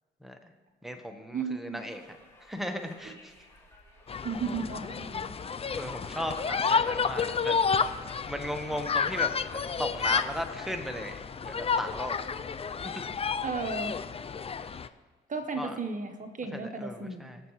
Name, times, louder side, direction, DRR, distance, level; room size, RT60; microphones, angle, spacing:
voice 1, 0.2-0.5 0.8-2.0 2.4-3.3 5.8-7.9 8.3-9.5 9.8-12.4 12.8-13.1 15.6-15.8 16.5-17.4, equal, ahead, 5 dB, 1.3 m, -37 dB
voice 2, 1.3-1.8 4.2-5.3 13.4-13.9 15.3-17.2, right 4 dB, 40° right, 6 dB, 1.2 m, -34 dB
Conversation, 1.8-10.4, left 2 dB, 15° left, 3.3 m, -56 dB
sound 1, 4.1-14.9, left 6 dB, 30° left, 0.5 m, -31 dB
21.0 x 7.1 x 3.2 m, 1.4 s
supercardioid pair, 65°, 20 cm